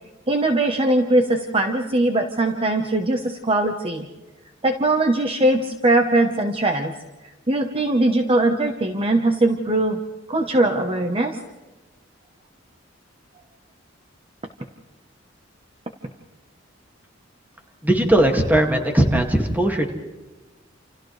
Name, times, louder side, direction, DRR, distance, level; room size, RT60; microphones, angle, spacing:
voice 1, 0.3-4.1 4.6-6.9 7.5-10.0 10.3-11.4, right 2 dB, 30° right, 5 dB, 1.1 m, -20 dB
voice 2, 17.8-19.9, right 1 dB, 10° right, 3 dB, 2.2 m, -18 dB
29.0 x 28.5 x 3.3 m, 1.2 s
head